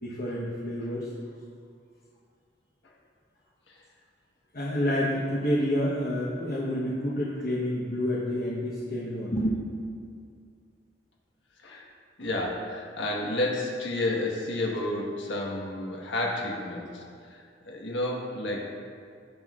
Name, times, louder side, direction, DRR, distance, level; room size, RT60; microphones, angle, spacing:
voice 1, 0.0-1.1 4.5-9.6, equal, 50° left, -5 dB, 1.1 m, -28 dB
voice 2, 12.2-18.6, left 1 dB, 85° left, -1 dB, 1.5 m, -31 dB
16.5 x 5.7 x 2.5 m, 2.3 s
head